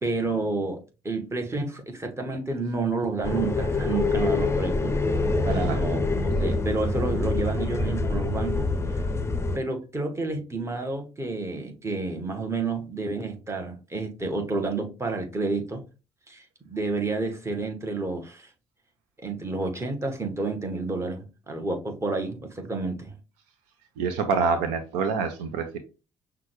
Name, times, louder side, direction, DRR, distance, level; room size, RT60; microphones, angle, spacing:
voice 1, 0.0-4.9 5.4-8.7 8.9-9.0 9.5-15.8 16.3-18.5 19.2-23.1, right 3 dB, 20° right, 1.2 m, -30 dB
sound 1, 3.2-9.6, left 3 dB, 20° left, 0.6 m, -25 dB
voice 2, 24.0-25.8, right 5 dB, 70° right, 0.5 m, -26 dB
5.8 x 2.3 x 3.1 m
figure-of-eight pair, 50°, 14 cm